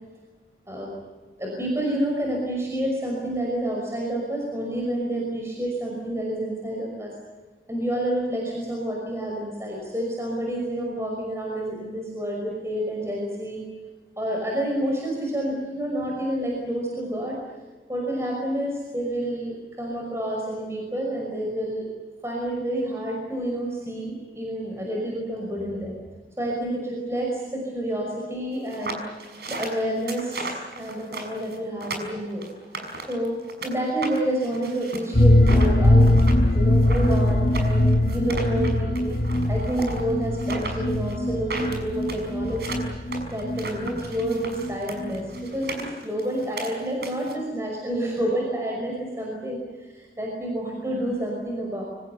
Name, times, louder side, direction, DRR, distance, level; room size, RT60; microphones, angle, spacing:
voice 1, 1.4-7.1 7.7-13.6 14.2-17.4 17.9-21.9 22.2-25.9 26.4-29.0 29.5-32.7 33.1-36.2 36.5-39.2 39.5-42.9 43.3-51.8, right 1 dB, 15° right, -1 dB, 5.7 m, -29 dB
sound 1, 28.7-33.7 34.0-47.3, right 2 dB, 60° right, 6.1 m, -36 dB
sound 2, 35.1-44.7 45.0-45.1 45.4-45.5, left 1 dB, 60° left, 1.7 m, -21 dB
27.0 x 25.0 x 6.8 m, 1.3 s
head